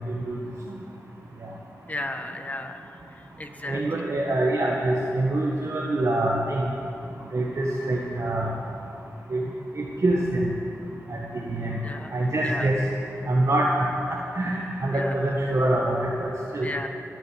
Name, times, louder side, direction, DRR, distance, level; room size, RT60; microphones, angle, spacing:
voice 1, 1.9-2.8 3.4-3.8 11.8-12.1 12.4-12.7 14.9-15.1 16.6-16.9, left 2 dB, 25° left, 5 dB, 1.5 m, -34 dB
voice 2, 3.7-6.7 7.3-8.5 9.3-9.4 9.8-10.5 11.1-11.8 12.1-12.8 13.3-13.7 14.3-16.7, right 1 dB, 50° right, -2 dB, 1.6 m, -25 dB
22.0 x 7.6 x 7.5 m, 2.8 s
cardioid pair, 60°, 6 cm